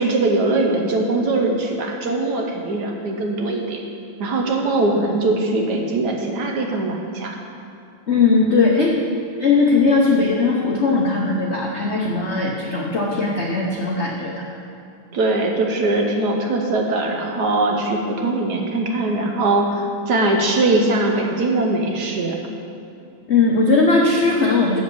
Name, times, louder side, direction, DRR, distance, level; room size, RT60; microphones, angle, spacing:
voice 1, 0.0-3.8 4.2-7.4 15.1-22.4, right 2 dB, 60° right, 2 dB, 1.3 m, -21 dB
voice 2, 8.1-8.9 9.4-14.5 23.3-24.8, left 3 dB, 60° left, -1 dB, 0.7 m, -18 dB
7.8 x 7.1 x 6.8 m, 2.6 s
omnidirectional pair, 2.3 m